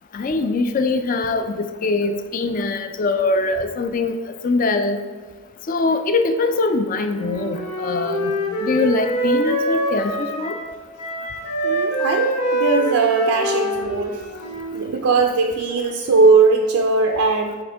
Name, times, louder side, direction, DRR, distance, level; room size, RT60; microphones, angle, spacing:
voice 1, 0.1-4.2 4.4-5.0 5.7-10.6, left 3 dB, 35° left, 8 dB, 0.3 m, -22 dB
Wind instrument woodwind instrument, 7.1-10.7 11.0-14.9, right 1 dB, 85° left, 1.2 m, -24 dB
voice 2, 11.6-14.2 14.7-17.6, right 4 dB, 80° right, 2 dB, 0.5 m, -19 dB
8.6 x 3.6 x 3.4 m, 1.5 s
head